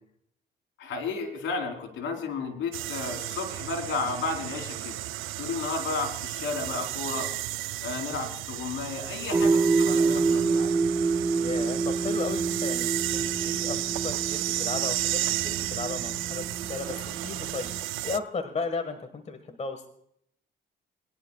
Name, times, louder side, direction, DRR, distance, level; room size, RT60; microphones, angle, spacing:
voice 1, 0.8-5.0 5.4-7.3 7.8-10.7, left 4 dB, 75° left, 2 dB, 3.6 m, -33 dB
sound 1, 2.7-18.2, right 15 dB, 90° right, 0.5 m, -33 dB
sound 2, 9.3-17.8, right 4 dB, 15° right, 0.4 m, -28 dB
voice 2, 11.3-16.9 17.2-17.7 18.0-19.9, left 4 dB, 35° left, 7 dB, 1.6 m, -35 dB
21.5 x 11.0 x 2.4 m, 0.71 s
cardioid pair, 90°, 20 cm